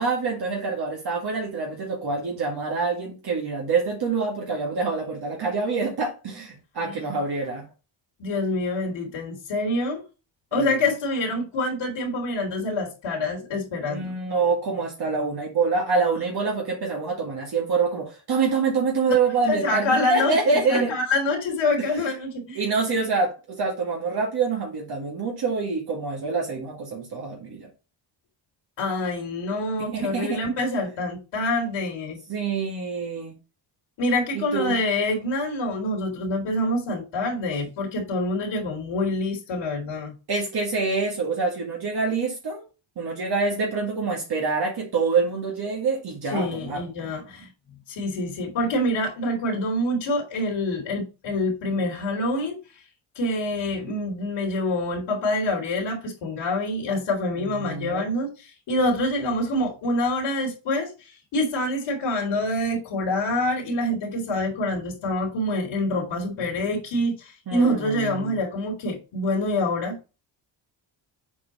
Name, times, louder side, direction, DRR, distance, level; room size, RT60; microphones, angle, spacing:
voice 1, 0.0-7.7 10.5-10.7 13.9-20.9 22.5-27.7 29.9-30.4 32.3-33.3 34.3-34.8 40.3-42.6 43.0-46.8 57.4-58.1 67.5-68.4, right 4 dB, 55° right, 2.0 m, -26 dB
voice 2, 8.2-10.0 10.5-14.1 19.1-19.2 19.5-22.6 28.8-32.2 34.0-40.1 46.3-52.6 53.1-70.0, left 1 dB, 75° left, 2.8 m, -26 dB
7.2 x 4.5 x 4.1 m
cardioid pair, 115°, 46 cm